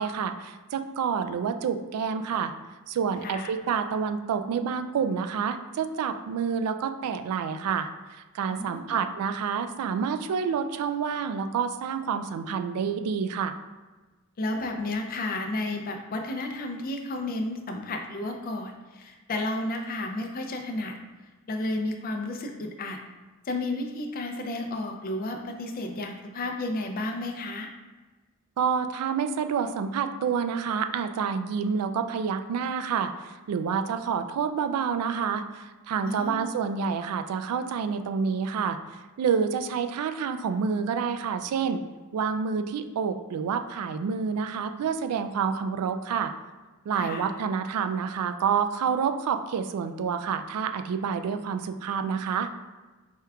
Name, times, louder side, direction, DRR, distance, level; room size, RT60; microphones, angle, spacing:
voice 1, 0.0-2.5 2.9-13.6 28.6-38.8 39.2-41.8 42.1-46.3 46.9-52.5, right 6 dB, 85° right, 9 dB, 0.3 m, -28 dB
voice 2, 3.2-3.5 8.5-9.0 14.4-21.0 21.5-23.0 23.4-27.7 36.0-36.5 46.9-47.3, left 2 dB, 40° left, 4 dB, 0.4 m, -32 dB
4.4 x 2.3 x 3.5 m, 1.3 s
head